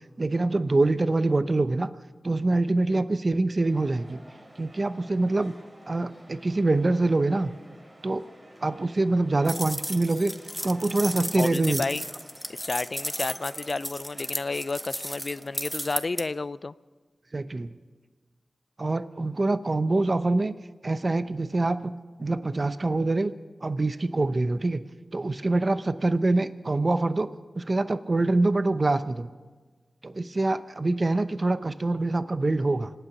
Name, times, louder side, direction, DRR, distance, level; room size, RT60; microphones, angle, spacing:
voice 1, 0.2-1.9 2.2-4.2 4.6-5.5 5.9-7.5 8.0-8.2 8.6-10.3 10.6-11.8 17.3-17.7 18.8-20.5 20.8-21.9 22.2-23.3 23.6-24.8 25.1-27.3 27.6-29.3 30.0-32.9, right 2 dB, 45° right, 12 dB, 0.7 m, -25 dB
sound 1, 3.6-16.2, right 1 dB, 30° right, 4.2 m, -51 dB
sound 2, 9.5-16.2, equal, ahead, 0.9 m, -34 dB
voice 2, 11.4-12.1 12.6-16.7, left 3 dB, 55° left, 17 dB, 0.5 m, -31 dB
26.0 x 9.0 x 6.1 m, 1.4 s
cardioid pair, 50°, 0 cm